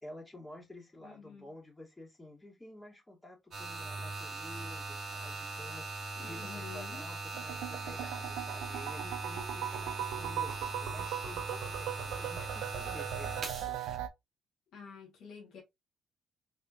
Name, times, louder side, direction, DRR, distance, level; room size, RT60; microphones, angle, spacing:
voice 1, 0.0-5.9 6.3-13.8, left 1 dB, 15° left, 2.0 m, -51 dB
voice 2, 1.0-1.4 6.2-7.0 14.7-15.6, left 6 dB, 75° left, 1.6 m, -49 dB
sound 1, 3.5-14.0, right 2 dB, 55° right, 1.5 m, -40 dB
sound 2, 7.3-14.1, right 11 dB, 85° right, 0.5 m, -39 dB
3.5 x 3.3 x 2.6 m
supercardioid pair, 55°, 0 cm